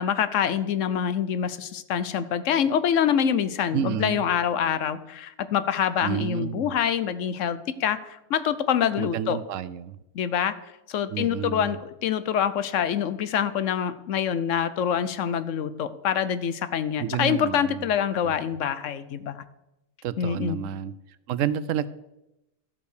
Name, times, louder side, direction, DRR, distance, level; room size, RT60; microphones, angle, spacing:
voice 1, 0.0-9.4 10.1-10.5 10.9-19.4 20.2-20.6, left 8 dB, 70° left, 13 dB, 1.0 m, -25 dB
voice 2, 3.7-4.3 6.0-6.7 9.0-10.0 11.1-11.7 17.0-17.9 18.2-18.4 20.0-20.9 21.3-21.9, right 10 dB, 75° right, 16 dB, 0.9 m, -30 dB
13.5 x 5.4 x 6.5 m, 0.92 s
omnidirectional pair, 1.4 m